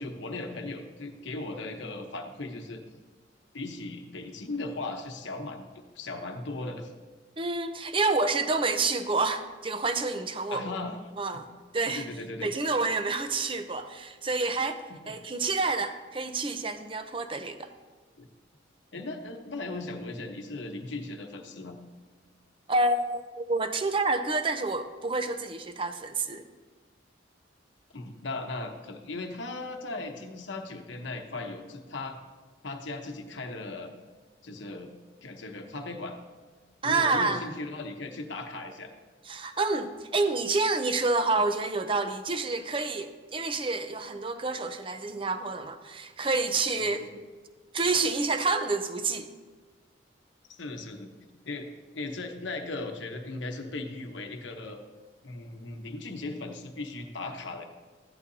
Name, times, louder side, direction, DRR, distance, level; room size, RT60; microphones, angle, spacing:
voice 1, 0.0-2.8 3.5-6.9 10.5-11.4 11.8-12.5 14.9-15.0 18.2-18.3 18.9-21.8 27.9-32.2 32.6-33.9 34.4-34.9 35.2-36.2 36.8-38.9 50.5-51.1 51.4-51.7 51.9-54.8 55.2-57.7, left 2 dB, 70° left, 4 dB, 1.0 m, -37 dB
voice 2, 7.4-10.7 11.2-11.5 11.7-12.1 12.4-14.8 15.1-17.7 22.7-26.5 36.8-37.4 39.3-47.1 47.7-49.3, right 3 dB, 25° right, 8 dB, 0.6 m, -28 dB
15.0 x 11.0 x 2.7 m, 1.4 s
head